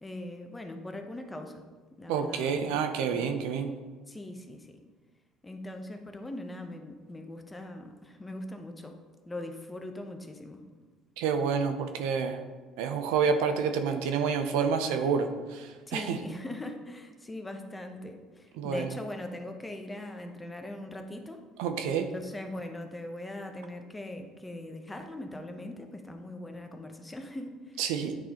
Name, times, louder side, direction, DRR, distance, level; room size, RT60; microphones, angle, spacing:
voice 1, 0.0-1.6 2.0-2.7 3.1-3.3 4.1-4.8 5.4-9.0 9.2-10.6 15.9-21.4 22.1-27.8, left 1 dB, 15° left, 4 dB, 0.8 m, -41 dB
voice 2, 2.1-3.7 11.2-12.4 12.8-16.2 18.6-19.0 21.6-22.1 27.8-28.2, right 6 dB, 85° right, 7 dB, 0.6 m, -28 dB
8.9 x 3.9 x 2.9 m, 1.4 s
supercardioid pair, 90°, 0 cm